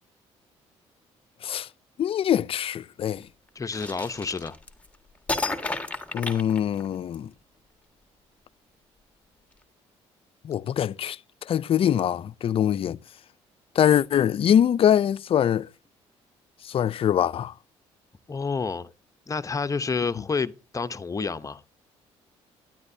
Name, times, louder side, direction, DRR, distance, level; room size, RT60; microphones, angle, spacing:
voice 1, 2.0-3.3 6.1-7.3 10.4-11.2 11.5-13.0 13.8-15.7 16.6-17.5, left 9 dB, 50° left, 0.4 m, -23 dB
voice 2, 3.6-4.6 18.3-18.9 19.3-21.6, left 4 dB, 25° left, 0.8 m, -29 dB
sound 1, 3.7-4.9 5.3-7.2, left 3 dB, 10° left, 1.7 m, -31 dB
12.0 x 10.5 x 2.7 m
supercardioid pair, 75°, 12 cm